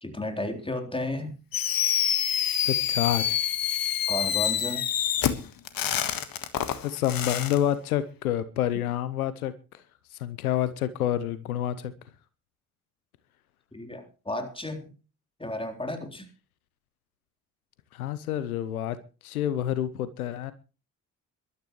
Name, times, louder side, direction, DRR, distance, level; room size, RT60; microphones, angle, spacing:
voice 1, 0.0-1.4 4.1-4.9 13.7-14.9 15.4-16.3, left 1 dB, 10° left, 3.7 m, -33 dB
Fireworks, 1.5-7.6, left 10 dB, 55° left, 1.6 m, -27 dB
voice 2, 2.6-3.4 6.8-9.8 10.1-11.9 17.9-19.0 19.2-20.5, left 11 dB, 85° left, 0.8 m, -28 dB
22.5 x 12.5 x 3.1 m
hypercardioid pair, 45°, 42 cm